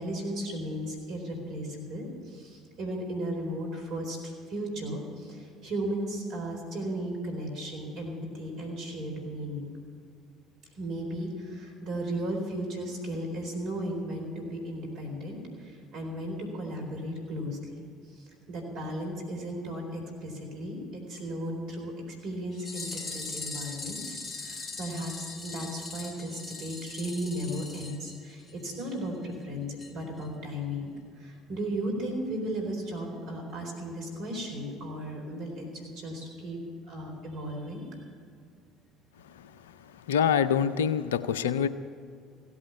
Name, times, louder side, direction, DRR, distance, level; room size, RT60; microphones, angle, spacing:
voice 1, 0.0-9.7 10.7-20.8 21.1-21.9 22.2-36.6 36.9-37.8, right 1 dB, 60° right, 1 dB, 4.1 m, -35 dB
sound 1, 22.5-28.7 29.0-29.1 29.3-29.4 29.8-29.9 30.2-30.3, left 3 dB, 30° left, 2.7 m, -40 dB
voice 2, 39.9-41.7, left 8 dB, 80° left, 14 dB, 0.5 m, -26 dB
16.5 x 8.6 x 8.3 m, 2.3 s
hypercardioid pair, 60°, 0 cm